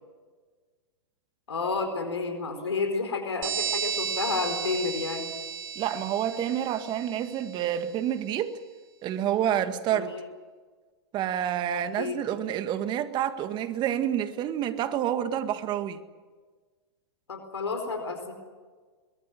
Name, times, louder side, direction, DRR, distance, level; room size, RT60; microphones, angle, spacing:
voice 1, 1.5-5.3 9.9-10.2 11.7-12.2 17.3-18.3, left 4 dB, 85° left, 4.6 m, -31 dB
sound 1, 3.4-7.7, right 8 dB, 50° right, 3.2 m, -34 dB
voice 2, 5.8-8.5 9.0-10.1 11.1-16.0, right 10 dB, 35° right, 2.0 m, -28 dB
23.0 x 21.0 x 9.2 m
hypercardioid pair, 110°, 14 cm